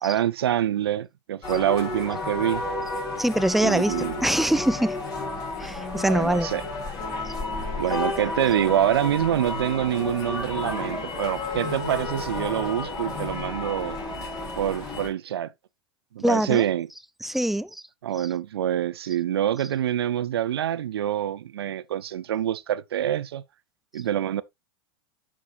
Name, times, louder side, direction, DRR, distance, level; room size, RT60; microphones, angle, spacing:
voice 1, 0.0-2.6 3.6-4.3 6.0-6.6 7.8-14.0 14.6-15.5 16.1-16.9 18.0-23.4 23.9-24.4, right 11 dB, 80° right, 0.5 m, -26 dB
sound 1, 1.4-15.1, left 3 dB, 35° left, 4.9 m, -32 dB
voice 2, 3.2-5.0 5.6-6.5 7.2-7.3 16.2-16.6 17.2-17.8, right 1 dB, ahead, 0.3 m, -24 dB
9.8 x 6.1 x 2.4 m
hypercardioid pair, 100°, 13 cm